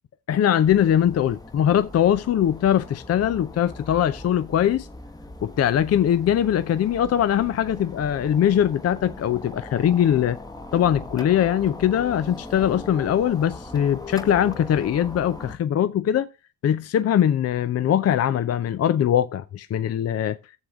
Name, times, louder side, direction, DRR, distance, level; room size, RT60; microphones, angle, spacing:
voice 1, 0.3-4.9 5.4-10.4 10.7-16.3 16.6-20.4, left 10 dB, 50° left, 0.6 m, -21 dB
sound 1, 0.6-15.6, left 2 dB, 10° left, 1.0 m, -39 dB
11.0 x 7.2 x 3.6 m
supercardioid pair, 65°, 33 cm